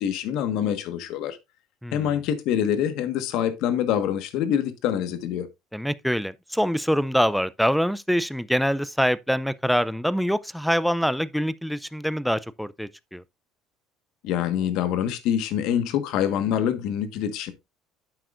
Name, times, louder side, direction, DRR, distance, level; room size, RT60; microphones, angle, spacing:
voice 1, 0.0-1.4 1.9-5.5 14.2-17.5, left 9 dB, 65° left, 1.3 m, -25 dB
voice 2, 5.7-13.2, equal, ahead, 0.3 m, -25 dB
9.3 x 7.7 x 2.5 m
cardioid pair, 150°, 0 cm